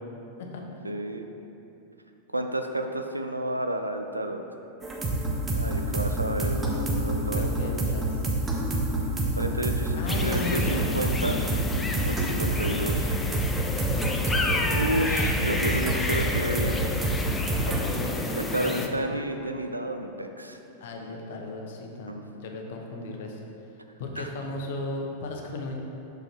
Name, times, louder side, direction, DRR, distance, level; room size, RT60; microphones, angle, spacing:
voice 1, 0.8-1.3 2.3-4.4 5.5-7.9 9.4-11.4 12.0-13.1 14.7-16.8 17.4-17.7 18.4-20.6 22.1-22.2 24.2-24.3, right 1 dB, 85° right, 6 dB, 0.4 m, -31 dB
sound 1, 4.8-18.0, right 1 dB, 20° right, 0.9 m, -28 dB
voice 2, 7.3-8.3 9.9-10.8 12.6-15.1 15.4-15.8 17.5-18.3 18.6-18.9 20.8-23.4 24.0-25.8, left 2 dB, 55° left, 2 dB, 0.8 m, -36 dB
sound 2, 10.1-18.9, left 2 dB, 15° left, 0.5 m, -31 dB
6.4 x 5.1 x 4.2 m, 2.9 s
figure-of-eight pair, 90°, 0 cm